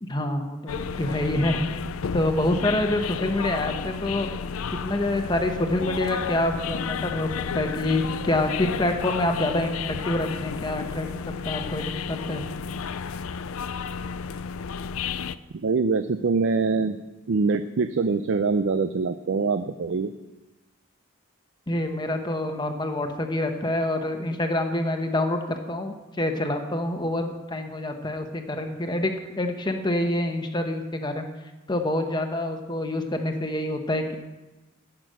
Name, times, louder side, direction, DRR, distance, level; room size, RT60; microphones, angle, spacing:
voice 1, 0.0-1.8 2.1-4.3 4.8-7.3 7.5-9.8 10.0-12.4 21.7-31.3 31.7-34.2, left 1 dB, 20° left, 5 dB, 1.0 m, -26 dB
sound 1, 0.7-15.4, left 6 dB, 80° left, 0.5 m, -32 dB
voice 2, 15.6-17.0 17.3-20.1, right 4 dB, 60° right, 11 dB, 0.4 m, -24 dB
15.5 x 6.0 x 6.3 m, 1.1 s
head